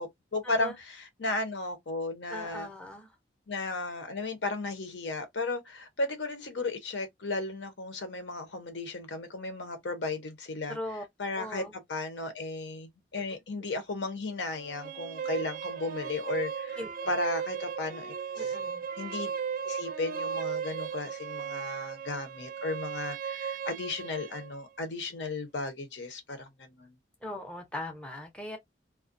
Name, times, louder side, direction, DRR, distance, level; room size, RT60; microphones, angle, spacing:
voice 1, 0.0-2.7 3.5-10.8 11.2-11.6 11.9-16.8 17.1-18.6 19.0-19.3 19.6-27.0, left 2 dB, 75° left, 0.8 m, -35 dB
voice 2, 2.3-3.1 10.7-11.0 11.3-11.7 16.8-17.1 18.4-18.9 27.2-28.6, left 1 dB, 5° left, 0.5 m, -39 dB
sound 1, 14.5-24.5, right 7 dB, 50° right, 0.5 m, -36 dB
2.4 x 2.1 x 2.5 m
head